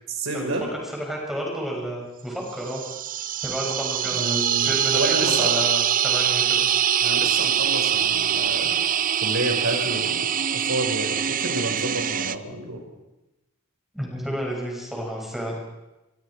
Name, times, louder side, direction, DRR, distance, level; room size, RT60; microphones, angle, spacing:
voice 1, 0.1-0.7 4.0-5.6 7.0-8.8 9.2-12.8, right 2 dB, 70° right, 2 dB, 5.5 m, -30 dB
voice 2, 0.9-2.8 3.4-6.6 13.9-15.6, equal, ahead, -2 dB, 7.2 m, -31 dB
sound 1, 2.6-12.4, right 9 dB, 40° right, 0.7 m, -23 dB
25.5 x 24.0 x 5.0 m, 0.99 s
head